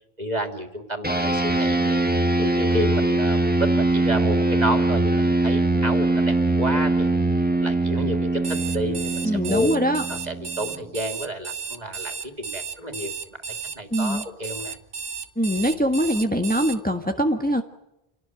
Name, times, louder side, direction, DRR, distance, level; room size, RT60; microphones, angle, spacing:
voice 1, 0.2-2.0 2.4-7.1 7.5-9.7 10.1-13.4 13.7-14.8, equal, 40° right, 5 dB, 3.2 m, -30 dB
sound 1, 1.0-10.8, right 2 dB, 10° right, 1.5 m, -22 dB
Alarm, 8.4-16.8, right 5 dB, 60° right, 1.6 m, -34 dB
voice 2, 9.2-10.0 13.9-14.2 15.4-17.6, equal, 10° left, 4 dB, 1.5 m, -23 dB
28.0 x 18.5 x 9.1 m, 0.90 s
omnidirectional pair, 1.1 m